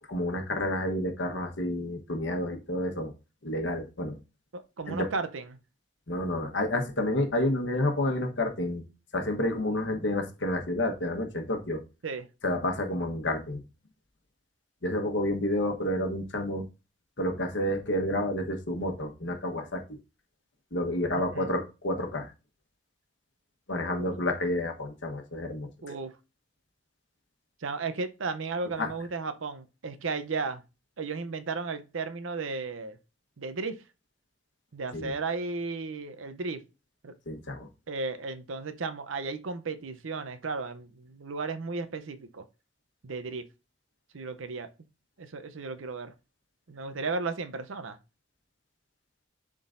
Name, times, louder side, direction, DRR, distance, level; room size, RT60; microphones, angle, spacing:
voice 1, 0.1-3.1 3.4-4.2 4.9-5.1 6.1-8.8 9.1-11.8 12.4-13.6 14.8-16.7 17.2-19.8 20.7-22.3 23.7-25.7 28.8-28.9 34.9-35.1 37.3-37.7, left 1 dB, 65° left, 1.2 m, -29 dB
voice 2, 4.5-5.6 12.0-12.3 21.1-21.5 23.9-24.1 25.8-26.1 27.6-30.6 31.0-33.0 33.4-33.8 34.7-36.6 37.0-37.1 37.9-42.4 43.0-43.4 44.1-44.7 45.2-46.1 46.7-48.0, right 4 dB, 90° right, 0.7 m, -34 dB
11.0 x 3.8 x 2.6 m
head